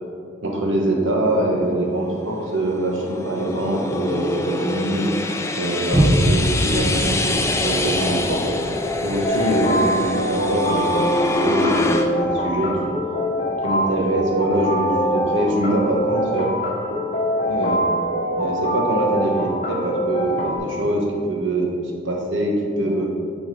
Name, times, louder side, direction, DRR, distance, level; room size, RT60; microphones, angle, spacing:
voice 1, 0.4-5.1 5.6-8.4 9.0-12.9 13.6-16.5 17.4-17.9 18.4-21.7 22.0-23.1, right 1 dB, 75° right, -1 dB, 1.3 m, -23 dB
sound 1, 2.0-12.1, left 2 dB, 15° left, 0.3 m, -25 dB
Boom, 5.9-12.8 13.4-13.5, equal, 25° right, 0.8 m, -26 dB
sound 2, 9.2-20.6, equal, 30° left, 1.2 m, -24 dB
9.0 x 4.0 x 4.8 m, 2.3 s
head